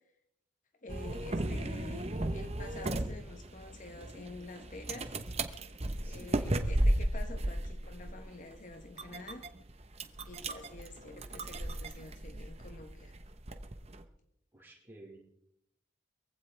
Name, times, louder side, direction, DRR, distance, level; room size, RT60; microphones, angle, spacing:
voice 1, 0.8-5.1 6.0-9.5 10.3-13.2, left 2 dB, 40° left, 6 dB, 1.0 m, -48 dB
sound 1, 0.9-14.0, right 1 dB, 35° right, 1.0 m, -35 dB
voice 2, 6.0-6.4 14.5-15.2, right 1 dB, 10° right, -4 dB, 6.2 m, -53 dB
22.5 x 15.5 x 3.4 m, 0.79 s
head